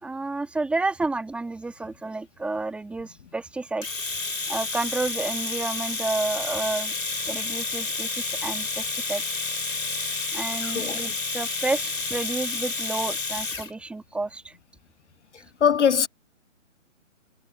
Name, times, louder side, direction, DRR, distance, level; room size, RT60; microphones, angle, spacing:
voice 1, 0.0-3.9 4.5-6.9 7.2-9.2 10.3-14.6, right 3 dB, 5° right, 2.2 m, -30 dB
Domestic sounds home sounds, 3.8-13.7, left 3 dB, 85° left, 6.2 m, -30 dB
voice 2, 10.6-11.0 15.6-16.1, left 7 dB, 60° left, 0.8 m, -21 dB
hypercardioid pair, 155°, 39 cm